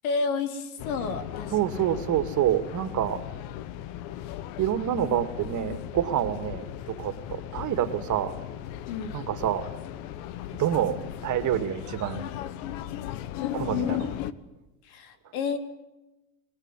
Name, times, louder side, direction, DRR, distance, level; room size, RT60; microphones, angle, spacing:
voice 1, 0.0-1.5 8.9-9.2 13.7-13.9 14.8-15.6, left 5 dB, 85° left, 8 dB, 3.6 m, -30 dB
sound 1, 0.8-14.3, left 12 dB, 65° left, 1.4 m, -37 dB
voice 2, 1.5-3.2 4.6-8.4 9.1-9.7 10.6-12.3 13.5-14.1, right 10 dB, 45° right, 10 dB, 2.4 m, -27 dB
25.5 x 18.5 x 9.2 m, 1.0 s
supercardioid pair, 115°, 42 cm